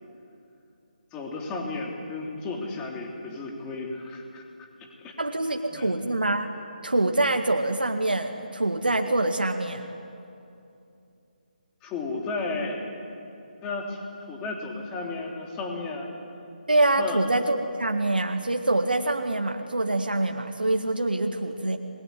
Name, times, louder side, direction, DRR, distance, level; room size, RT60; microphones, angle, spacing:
voice 1, 1.1-4.4 5.0-5.1 5.7-5.9 11.8-12.8 13.6-16.1 16.9-17.2, left 3 dB, 15° left, 0 dB, 3.4 m, -33 dB
voice 2, 5.2-6.5 6.8-9.8 16.7-21.8, right 2 dB, 85° right, 4 dB, 1.8 m, -25 dB
26.5 x 21.0 x 9.7 m, 2.7 s
figure-of-eight pair, 150°, 5 cm